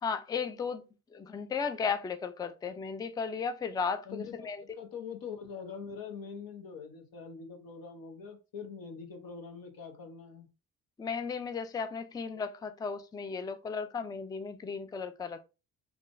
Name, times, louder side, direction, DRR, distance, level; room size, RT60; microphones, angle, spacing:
voice 1, 0.0-0.8 1.1-4.6 11.0-15.4, left 5 dB, 10° left, 0.3 m, -35 dB
voice 2, 4.7-10.5, left 6 dB, 60° left, 1.0 m, -43 dB
3.6 x 2.3 x 2.5 m
supercardioid pair, 60°, 39 cm